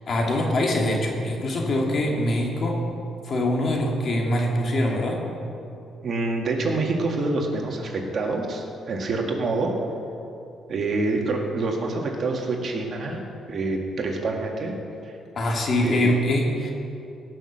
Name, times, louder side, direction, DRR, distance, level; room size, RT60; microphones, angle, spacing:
voice 1, 0.0-2.8 3.2-5.2 15.4-16.7, left 1 dB, 50° left, 0 dB, 2.3 m, -23 dB
voice 2, 6.0-9.7 10.7-13.2 13.5-14.7 15.0-15.2 15.8-16.1, right 3 dB, 50° right, 1 dB, 2.0 m, -26 dB
17.5 x 6.3 x 6.6 m, 2.7 s
cardioid pair, 90°, 0 cm